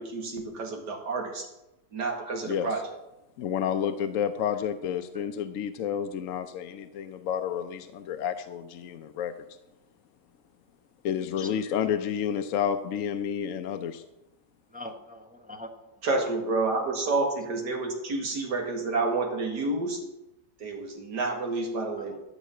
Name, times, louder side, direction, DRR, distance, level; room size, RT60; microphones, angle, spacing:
voice 1, 0.0-1.5 1.9-2.9 16.0-20.0 20.6-22.2, right 3 dB, 70° right, 2 dB, 2.5 m, -29 dB
voice 2, 3.4-9.3 11.0-14.0, left 8 dB, 65° left, 8 dB, 0.8 m, -30 dB
voice 3, 11.4-11.8 14.7-15.9 17.9-18.0 22.0-22.2, left 1 dB, 10° right, 3 dB, 0.4 m, -44 dB
13.5 x 5.4 x 7.6 m, 0.94 s
omnidirectional pair, 1.9 m